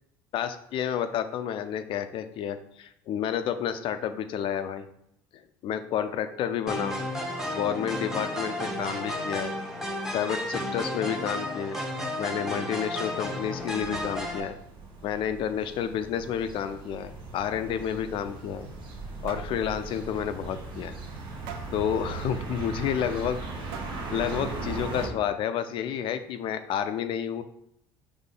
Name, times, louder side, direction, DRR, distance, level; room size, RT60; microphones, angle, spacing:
voice 1, 0.3-4.8 5.6-7.1 7.5-9.5 10.1-11.8 12.2-14.5 15.0-18.7 19.2-20.9 21.7-23.4 24.1-27.4, left 9 dB, 55° left, 10 dB, 0.4 m, -30 dB
sound 1, 6.7-14.4, left 1 dB, 5° right, 0.9 m, -33 dB
sound 2, 13.1-25.1, right 3 dB, 50° right, 1.0 m, -38 dB
sound 3, 18.5-19.0 19.3-19.6 20.0-20.2 20.5-20.6 21.5-21.8 23.0-23.1 23.7-24.2, right 6 dB, 70° right, 0.5 m, -42 dB
4.0 x 3.1 x 3.8 m, 0.75 s
hypercardioid pair, 75°, 11 cm